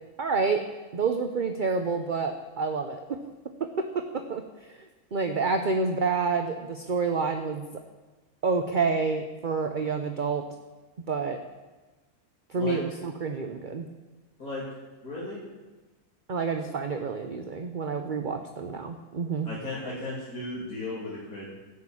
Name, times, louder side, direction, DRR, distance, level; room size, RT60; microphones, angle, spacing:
voice 1, 0.2-0.6 0.9-3.0 4.3-4.4 5.1-7.7 8.4-10.4 11.1-11.4 12.5-13.9 16.3-19.5, right 4 dB, 40° right, 5 dB, 0.9 m, -28 dB
voice 2, 15.0-15.4 16.6-16.7 19.4-21.5, left 2 dB, 85° left, -7 dB, 3.4 m, -35 dB
16.5 x 6.7 x 8.7 m, 1.2 s
omnidirectional pair, 1.5 m